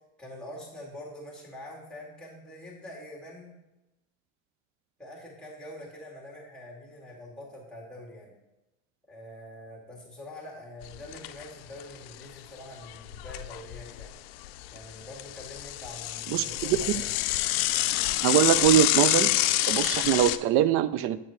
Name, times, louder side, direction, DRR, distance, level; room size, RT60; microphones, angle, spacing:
voice 1, 0.2-3.5 5.0-8.3 9.1-14.2 14.7-17.1, left 1 dB, 5° left, -4 dB, 2.2 m, -45 dB
Bicycle / Mechanisms, 10.8-11.5 11.8-11.9 12.1-12.2 12.9-14.1 14.4-20.4, left 16 dB, 90° left, 0.5 m, -27 dB
voice 2, 16.3-17.0 18.2-19.3 19.7-21.2, right 12 dB, 50° right, 16 dB, 0.4 m, -23 dB
8.8 x 4.7 x 4.5 m, 0.98 s
cardioid pair, 145°, 30 cm